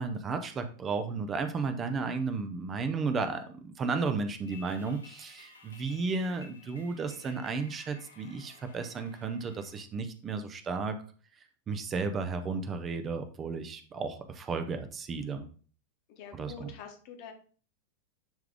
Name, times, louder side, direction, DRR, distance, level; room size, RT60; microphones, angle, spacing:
voice 1, 0.0-10.9 11.7-15.5 16.3-16.7, right 4 dB, 25° right, 8 dB, 0.9 m, -33 dB
sound 1, 4.4-9.8, left 3 dB, 75° left, 1.1 m, -55 dB
voice 2, 16.1-17.3, left 6 dB, 45° left, 4 dB, 1.5 m, -46 dB
10.5 x 3.6 x 3.5 m, 0.41 s
figure-of-eight pair, 90°, 0 cm